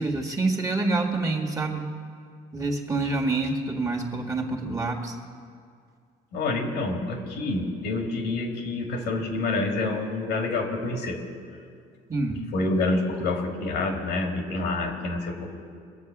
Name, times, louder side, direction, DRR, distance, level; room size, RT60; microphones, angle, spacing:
voice 1, 0.0-1.8 2.5-5.1 12.1-12.4, right 3 dB, 20° right, 1 dB, 1.7 m, -27 dB
voice 2, 6.3-11.2 12.5-15.5, left 2 dB, 85° left, 2 dB, 2.3 m, -27 dB
22.0 x 7.3 x 6.0 m, 2.2 s
cardioid pair, 110°, 17 cm